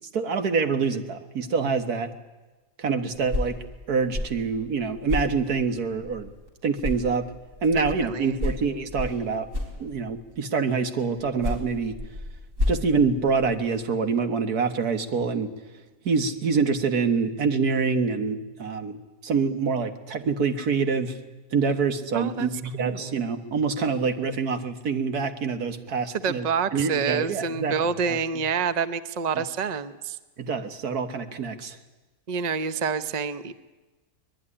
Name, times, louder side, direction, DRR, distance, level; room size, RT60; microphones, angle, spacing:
voice 1, 0.1-2.1 2.8-3.6 3.9-6.3 6.6-7.3 7.6-9.5 9.8-12.0 12.7-15.5 16.1-19.0 19.2-21.2 21.5-26.5 26.7-27.8 28.1-28.4 29.4-29.5 30.4-31.8, right 5 dB, 85° right, 8 dB, 2.0 m, -26 dB
sound 1, 3.1-6.5 6.8-10.3 11.1-13.8, left 2 dB, 55° right, 5.0 m, -33 dB
voice 2, 7.8-8.4 22.1-22.5 22.8-23.1 26.2-30.2 32.3-33.5, right 6 dB, 35° right, 12 dB, 0.8 m, -27 dB
24.0 x 20.5 x 10.0 m, 1.2 s
omnidirectional pair, 1.6 m